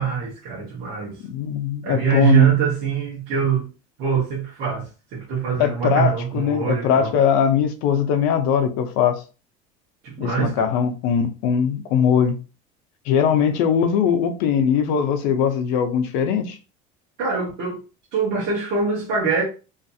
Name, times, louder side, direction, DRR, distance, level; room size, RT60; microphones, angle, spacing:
voice 1, 0.0-1.2 1.8-3.7 4.0-7.1 10.0-10.7 17.2-17.8 18.1-19.4, right 6 dB, 50° right, 0.8 m, -23 dB
voice 2, 1.3-2.5 5.6-9.2 10.2-12.4 13.1-16.6, left 7 dB, 70° left, 0.5 m, -20 dB
2.5 x 2.4 x 2.6 m
cardioid pair, 180°, 19 cm